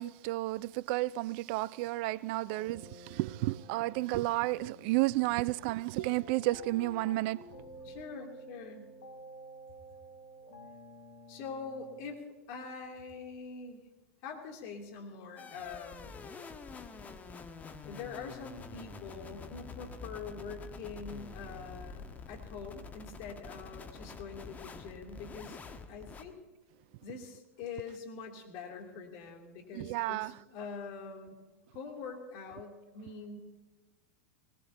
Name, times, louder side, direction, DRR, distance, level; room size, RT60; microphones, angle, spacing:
voice 1, 0.0-7.5 29.7-30.3, right 19 dB, 50° right, 0.4 m, -32 dB
sound 1, 2.5-12.0, equal, 75° left, 3.4 m, -52 dB
voice 2, 7.8-8.9 11.3-13.8 14.2-16.1 17.8-25.6 25.9-26.4 27.0-31.4 31.7-33.4, left 5 dB, 50° left, 2.9 m, -44 dB
sound 2, 15.4-26.2, left 4 dB, 20° left, 1.4 m, -47 dB
20.0 x 20.0 x 2.9 m
figure-of-eight pair, 90°, 7 cm